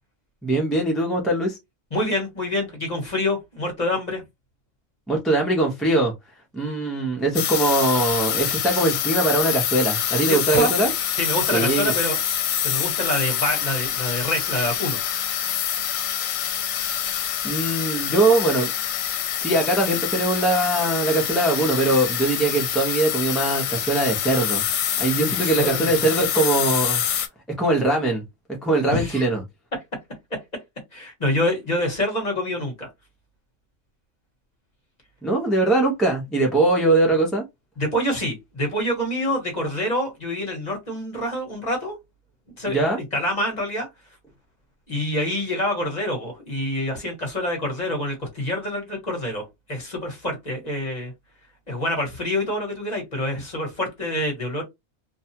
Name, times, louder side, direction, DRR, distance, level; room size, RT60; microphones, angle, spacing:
voice 1, 0.4-1.6 5.1-6.1 6.5-10.9 11.5-11.9 17.4-18.7 19.4-24.6 25.0-27.0 27.5-28.2 28.5-29.4 35.2-37.4 42.7-43.0, right 2 dB, ahead, 0.4 m, -21 dB
voice 2, 1.9-4.2 10.2-10.7 11.1-12.2 12.6-15.0 25.3-26.0 28.9-29.2 30.9-32.9 37.8-42.0 42.6-43.9 44.9-51.1 51.7-54.6, left 1 dB, 35° left, 1.1 m, -26 dB
sound 1, 7.4-27.3, left 9 dB, 75° left, 0.9 m, -26 dB
2.7 x 2.3 x 2.8 m
omnidirectional pair, 1.4 m